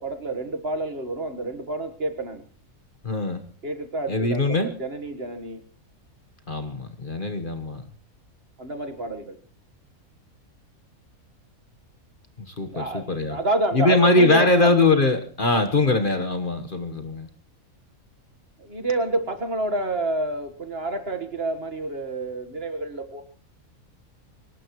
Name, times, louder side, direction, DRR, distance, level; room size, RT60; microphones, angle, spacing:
voice 1, 0.0-2.4 3.6-5.6 8.6-9.4 12.6-14.7 18.6-23.2, right 2 dB, 45° right, 7 dB, 1.8 m, -28 dB
voice 2, 3.0-3.4 4.1-4.7 6.5-7.8 12.4-13.4 13.7-17.3, left 2 dB, 35° left, 7 dB, 1.5 m, -22 dB
23.5 x 19.0 x 3.1 m, 0.42 s
omnidirectional pair, 1.5 m